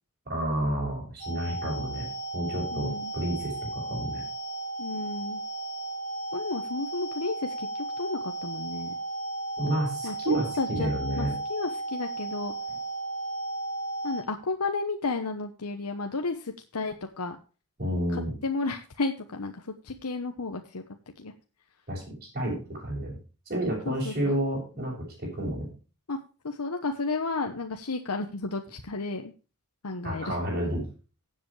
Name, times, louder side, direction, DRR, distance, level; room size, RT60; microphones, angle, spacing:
voice 1, 0.3-2.1 2.3-4.2 9.6-11.3 17.8-18.3 21.9-23.1 23.4-25.7 30.0-30.8, right 1 dB, 40° right, -6 dB, 6.3 m, -30 dB
sound 1, 1.2-14.2, right 2 dB, 35° left, 2.6 m, -35 dB
voice 2, 2.7-3.1 4.8-5.4 6.3-8.9 10.0-10.9 11.2-12.5 14.0-17.4 18.1-20.8 21.2-21.3 23.9-24.4 26.1-29.3 29.8-30.4, left 3 dB, 85° left, 5 dB, 1.1 m, -33 dB
16.5 x 7.9 x 3.2 m, 0.34 s
head